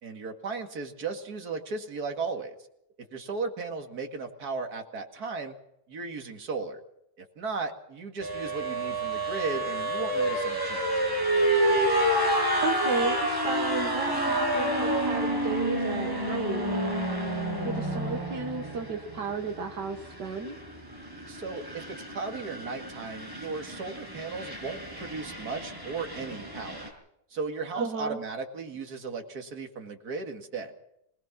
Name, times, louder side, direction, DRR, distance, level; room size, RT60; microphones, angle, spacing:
voice 1, 0.0-2.6 3.0-5.5 5.9-6.8 7.2-10.8 21.3-26.9 27.3-30.7, right 4 dB, 60° right, 4 dB, 2.6 m, -36 dB
sound 1, 8.2-26.9, right 1 dB, 10° right, 5.6 m, -29 dB
voice 2, 12.6-16.7 17.6-20.5 27.8-28.2, right 4 dB, 75° right, 4 dB, 2.0 m, -33 dB
25.0 x 18.5 x 6.0 m, 0.81 s
omnidirectional pair, 1.9 m